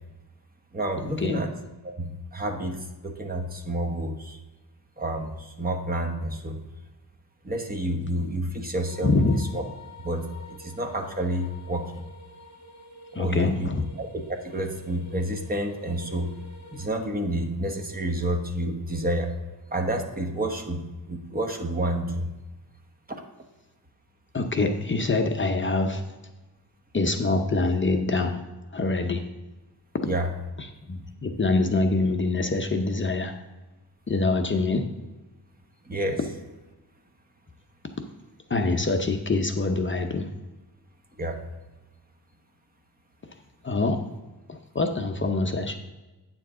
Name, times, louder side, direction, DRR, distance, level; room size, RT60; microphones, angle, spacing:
voice 1, 0.7-1.5 1.8-4.4 5.0-6.6 7.4-9.2 9.5-9.6 10.0-10.2 10.6-12.0 13.1-13.7 14.0-16.3 16.7-19.3 19.7-22.3 23.1-23.2 30.0-30.3 35.8-36.2 41.2-41.4, right 1 dB, 20° right, 3 dB, 1.0 m, -29 dB
sound 1, 8.8-16.9, left 2 dB, 45° left, 1.9 m, -48 dB
voice 2, 9.0-9.4 13.1-13.8 24.3-26.2 26.9-28.4 28.7-29.2 30.0-30.1 30.6-33.3 34.1-34.9 38.0-38.1 38.5-40.3 43.6-44.0 44.5-45.8, left 3 dB, 30° left, 5 dB, 0.6 m, -25 dB
9.3 x 7.1 x 3.7 m, 1.1 s
wide cardioid pair, 145°, 39 cm